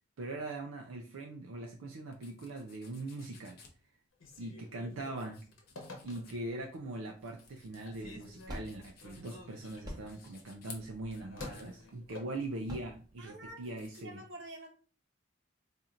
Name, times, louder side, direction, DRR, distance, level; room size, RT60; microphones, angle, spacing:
voice 1, 0.2-3.6 4.4-5.4 6.0-14.2, right 2 dB, 85° right, 0.4 m, -41 dB
sound 1, 2.1-14.0, left 5 dB, 45° left, 0.6 m, -58 dB
Telephone, 4.1-6.6 7.1-7.6 7.9-12.9, left 2 dB, 80° left, 0.9 m, -51 dB
sound 2, 7.7-13.9, equal, 20° right, 0.7 m, -48 dB
voice 2, 13.2-13.6 14.0-14.7, right 1 dB, 60° right, 0.9 m, -47 dB
4.2 x 2.5 x 2.5 m
head